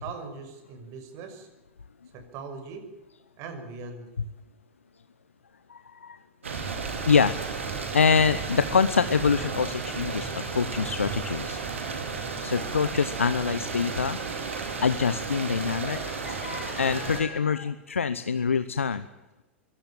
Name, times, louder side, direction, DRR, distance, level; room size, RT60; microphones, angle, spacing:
voice 1, 0.0-1.5 2.1-2.9 3.4-4.1, right 4 dB, 45° right, 8 dB, 6.0 m, -40 dB
voice 2, 5.7-6.2 7.1-7.6 7.9-11.6 12.4-14.2 14.8-19.1, left 5 dB, 85° left, 13 dB, 0.9 m, -25 dB
sound 1, 6.4-17.2, right 5 dB, 80° right, 5.1 m, -33 dB
24.0 x 17.0 x 8.8 m, 1.1 s
figure-of-eight pair, 95°, 7 cm